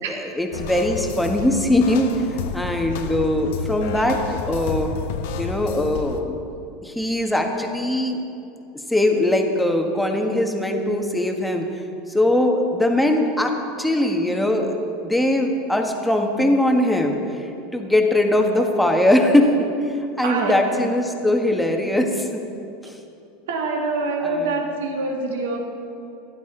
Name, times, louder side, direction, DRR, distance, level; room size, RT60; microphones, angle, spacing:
voice 1, 0.1-2.1 2.5-4.9 5.4-6.4 6.8-8.2 8.9-11.7 12.1-19.7 20.2-22.4 22.8-23.0 24.2-24.6, left 1 dB, 5° left, 2 dB, 1.6 m, -21 dB
sound 1, 0.5-6.2, left 6 dB, 65° left, 0.9 m, -31 dB
voice 2, 20.2-20.5 23.5-25.6, right 3 dB, 75° right, 1 dB, 2.0 m, -25 dB
15.5 x 11.5 x 3.9 m, 2.7 s
hypercardioid pair, 90°, 0 cm